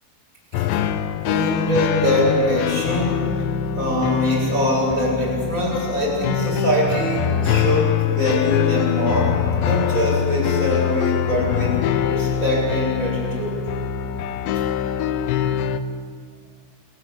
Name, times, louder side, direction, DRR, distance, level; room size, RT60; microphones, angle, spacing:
sound 1, 0.5-15.8, left 9 dB, 75° left, 3.0 m, -23 dB
voice 1, 1.2-3.2 3.7-11.8 12.1-13.6, left 1 dB, 15° right, -4 dB, 8.2 m, -23 dB
29.0 x 17.0 x 8.7 m, 2.1 s
omnidirectional pair, 5.6 m